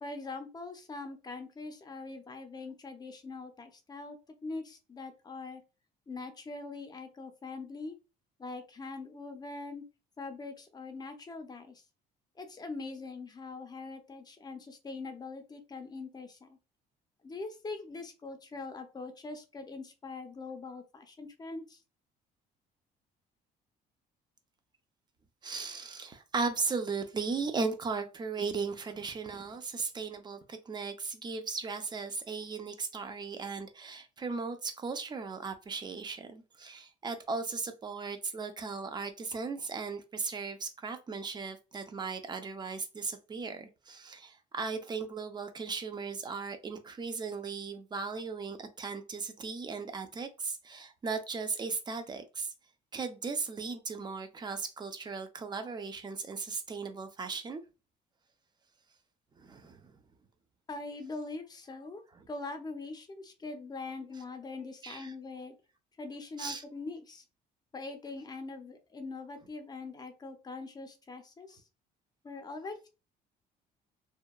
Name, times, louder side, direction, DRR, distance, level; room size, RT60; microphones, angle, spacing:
voice 1, 0.0-5.6 6.1-8.0 8.4-9.8 10.2-11.8 12.4-16.6 17.2-21.8 60.7-62.0 62.3-65.5 66.0-67.2 67.7-71.6 72.2-72.9, left 3 dB, 25° left, 0.5 m, -42 dB
voice 2, 25.4-52.5 52.9-57.6 59.4-60.0 64.8-65.1 66.4-66.6, right 4 dB, 25° right, 0.5 m, -37 dB
2.8 x 2.2 x 2.2 m
cardioid pair, 110°, 17 cm